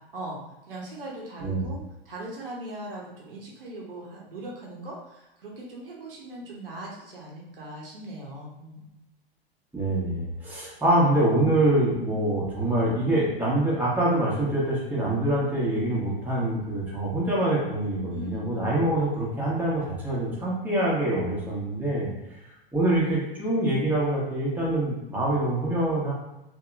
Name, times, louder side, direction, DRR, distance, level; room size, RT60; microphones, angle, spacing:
voice 1, 0.7-8.9 18.1-18.5, right 1 dB, 65° right, -3 dB, 0.8 m, -40 dB
voice 2, 9.7-22.1 22.7-26.1, right 1 dB, 5° right, -7 dB, 1.0 m, -25 dB
2.9 x 2.8 x 2.3 m, 0.94 s
figure-of-eight pair, 95°, 30 cm